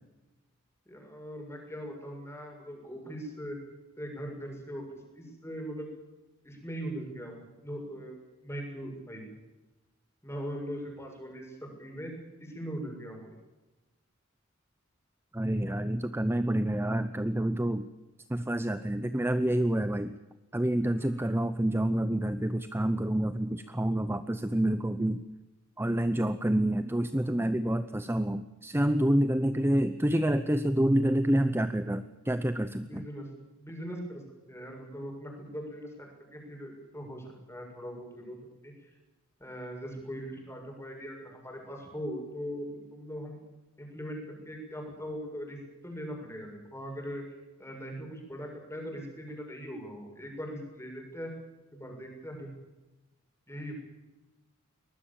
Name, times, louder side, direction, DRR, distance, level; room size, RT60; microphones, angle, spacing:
voice 1, 0.8-3.6 4.0-5.9 6.4-8.1 8.4-9.2 10.2-12.1 12.4-13.4 21.0-21.2 32.8-33.3 33.6-34.2 34.5-38.9 39.4-43.4 43.8-47.2 47.6-51.3 51.7-52.5 53.5-53.7, equal, 15° left, 1 dB, 6.8 m, -40 dB
voice 2, 15.3-17.9 18.3-20.2 20.5-25.2 25.8-33.0, right 1 dB, 10° right, 11 dB, 0.7 m, -28 dB
23.5 x 20.0 x 7.2 m, 1.1 s
head